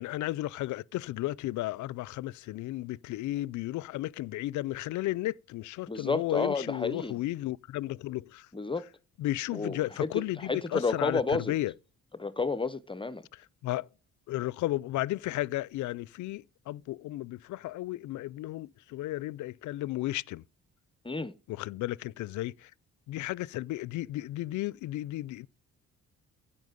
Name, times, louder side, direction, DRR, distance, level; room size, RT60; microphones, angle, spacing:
voice 1, 0.0-8.5 9.2-11.7 13.3-13.9 14.3-20.4 21.5-22.7 23.1-25.5, left 16 dB, 75° left, 0.5 m, -34 dB
voice 2, 5.9-7.2 8.5-8.9 9.5-10.1 10.4-11.5 12.2-13.2 21.0-21.3, left 4 dB, 15° left, 0.7 m, -31 dB
16.0 x 5.8 x 5.1 m
cardioid pair, 90°, 30 cm